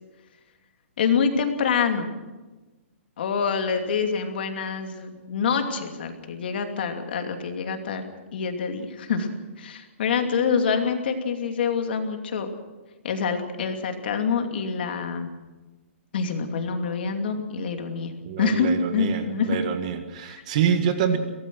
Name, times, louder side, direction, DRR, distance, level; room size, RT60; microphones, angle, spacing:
voice 1, 1.0-2.1 3.2-8.0 8.3-9.3 9.6-12.5 13.0-15.3 16.1-18.1 18.4-19.6 20.3-20.4, left 5 dB, 50° left, 5 dB, 2.7 m, -26 dB
voice 2, 18.2-21.2, right 8 dB, 30° right, 7 dB, 1.7 m, -26 dB
23.5 x 18.0 x 6.3 m, 1.2 s
hypercardioid pair, 175°, 7 cm